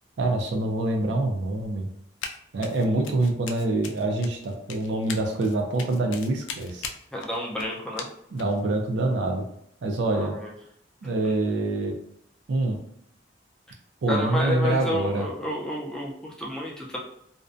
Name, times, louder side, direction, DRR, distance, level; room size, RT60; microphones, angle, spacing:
voice 1, 0.2-1.9 2.5-6.9 8.3-9.4 9.8-10.4 11.0-11.9 12.5-12.8 14.0-15.3, right 2 dB, 70° right, 2 dB, 0.4 m, -25 dB
Run, 2.2-2.4 2.6-8.6, left 6 dB, 85° left, 0.3 m, -39 dB
voice 2, 7.1-8.1 10.1-10.5 14.1-17.0, left 1 dB, 5° left, -3 dB, 0.4 m, -30 dB
2.5 x 2.1 x 2.4 m, 0.72 s
head